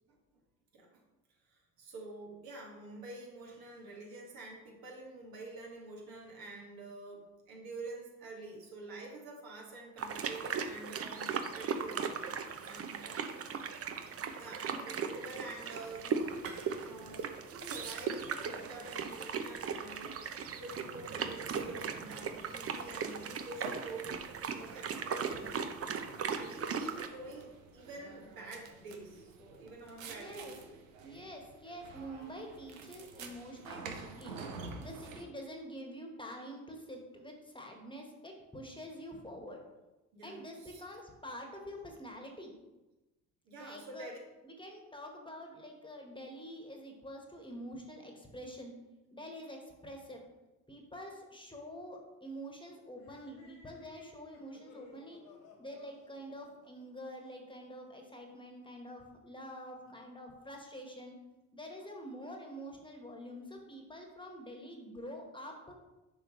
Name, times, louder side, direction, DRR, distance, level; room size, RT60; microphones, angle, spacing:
voice 1, 1.3-12.1 12.6-13.3 14.3-16.4 16.8-24.1 24.4-25.5 26.3-30.5 40.1-40.8 43.5-44.2, right 2 dB, 65° right, -2 dB, 2.0 m, -48 dB
sound 1, 10.0-27.1, right 6 dB, 40° right, 0.7 m, -38 dB
voice 2, 14.7-15.0 30.1-30.6 31.0-34.4 34.8-39.6 40.2-42.5 43.6-44.1 44.4-48.7 49.1-50.2 50.7-55.2 55.6-61.2 61.5-65.7, equal, 15° left, 2 dB, 1.4 m, -47 dB
sound 2, 15.8-35.3, right 4 dB, 90° right, 0.7 m, -50 dB
sound 3, 52.9-57.6, left 3 dB, 70° left, 1.3 m, -58 dB
6.9 x 5.0 x 3.2 m, 1.1 s
hypercardioid pair, 55°, 38 cm